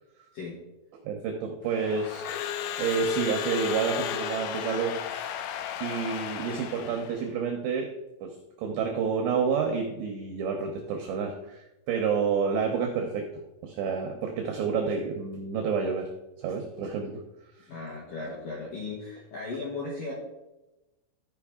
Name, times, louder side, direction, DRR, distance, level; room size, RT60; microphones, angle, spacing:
voice 1, 1.0-2.3 2.8-5.4 5.8-7.9 8.2-13.3 13.6-16.1 16.4-17.2, right 5 dB, 85° right, 3 dB, 2.4 m, -29 dB
Crowd / Alarm, 1.7-7.2, left 9 dB, 90° left, 2.7 m, -34 dB
voice 2, 17.7-20.1, left 3 dB, 75° left, -5 dB, 2.0 m, -36 dB
14.0 x 5.0 x 3.6 m, 0.99 s
omnidirectional pair, 6.0 m